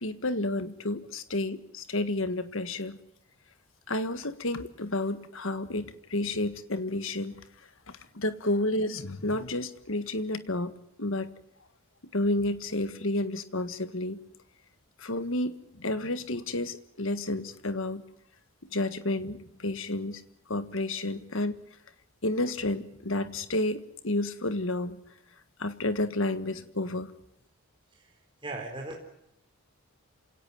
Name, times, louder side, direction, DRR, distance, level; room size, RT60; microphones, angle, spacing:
voice 1, 0.0-3.0 3.9-7.4 7.9-11.3 12.1-14.2 15.0-18.0 18.7-20.2 20.5-21.6 22.2-25.0 25.6-27.1, left 2 dB, 60° left, 11 dB, 1.6 m, -31 dB
voice 2, 27.9-29.0, right 2 dB, 20° right, 0 dB, 4.1 m, -39 dB
27.5 x 17.5 x 9.4 m, 0.79 s
head